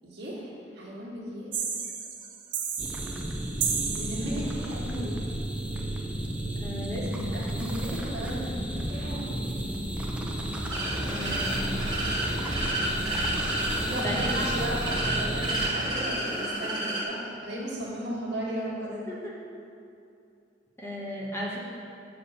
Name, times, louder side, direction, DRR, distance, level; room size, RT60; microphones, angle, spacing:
voice 1, 0.0-0.5 0.7-1.5 3.9-5.2 7.3-9.4 13.6-19.0, right 1 dB, 65° right, -5 dB, 1.7 m, -35 dB
sound 1, 1.5-4.8, right 7 dB, 45° right, 0.7 m, -33 dB
sound 2, 2.8-15.7, right 1 dB, 5° right, 0.6 m, -32 dB
voice 2, 6.6-7.6 11.0-11.8 14.0-14.3 19.1-19.3 20.8-21.7, equal, 15° left, -5 dB, 1.3 m, -35 dB
sound 3, 10.7-17.0, right 1 dB, 25° right, 1.4 m, -30 dB
6.0 x 5.0 x 6.7 m, 2.6 s
head